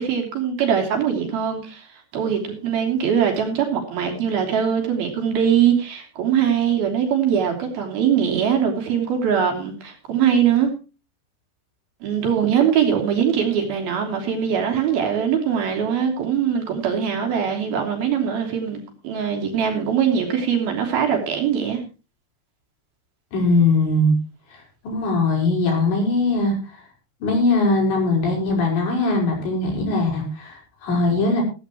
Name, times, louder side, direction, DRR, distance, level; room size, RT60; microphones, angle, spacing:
voice 1, 0.0-1.9 2.1-10.7 12.0-21.8, right 8 dB, 60° right, 2 dB, 4.9 m, -22 dB
voice 2, 23.3-24.1 24.8-26.6 27.2-31.4, left 2 dB, 80° left, 0 dB, 8.1 m, -20 dB
16.0 x 15.5 x 3.0 m, 0.32 s
omnidirectional pair, 5.1 m